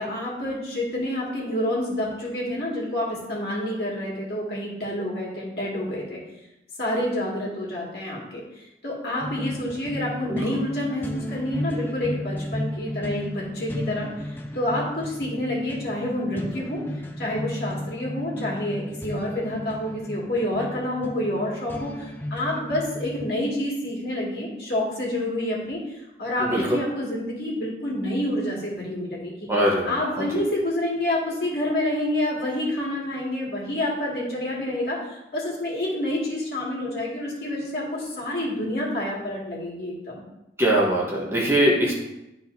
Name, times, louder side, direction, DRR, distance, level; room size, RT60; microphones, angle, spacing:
voice 1, 0.0-6.2 6.8-16.8 17.2-29.5 29.8-40.2, left 1 dB, 60° left, -4 dB, 2.1 m, -28 dB
sound 1, 9.2-23.3, left 1 dB, 10° left, 0.5 m, -34 dB
voice 2, 29.5-30.3 40.6-41.9, right 1 dB, 15° right, -4 dB, 1.0 m, -22 dB
11.5 x 4.2 x 2.7 m, 0.92 s
head